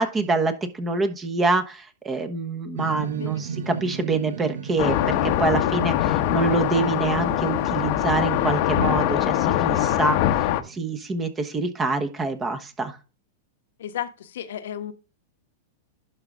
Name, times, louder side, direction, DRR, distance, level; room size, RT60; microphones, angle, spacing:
voice 1, 0.0-13.0, right 3 dB, 20° right, 1.1 m, -26 dB
sound 1, 2.8-11.2, right 7 dB, 85° right, 0.8 m, -36 dB
sound 2, 4.8-10.6, left 13 dB, 55° left, 0.9 m, -23 dB
voice 2, 13.8-14.9, left 10 dB, 75° left, 1.1 m, -33 dB
11.5 x 4.0 x 3.7 m
hypercardioid pair, 125°, 0 cm